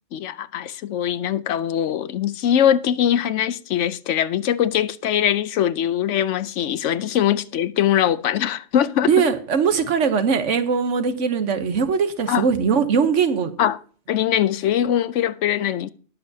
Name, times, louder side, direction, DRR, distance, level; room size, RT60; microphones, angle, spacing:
voice 1, 0.1-9.1 12.3-12.5 13.6-13.8 14.1-15.9, left 10 dB, 80° left, 1.0 m, -22 dB
voice 2, 9.1-13.5, right 6 dB, 80° right, 1.3 m, -20 dB
20.0 x 6.8 x 2.7 m
omnidirectional pair, 1.2 m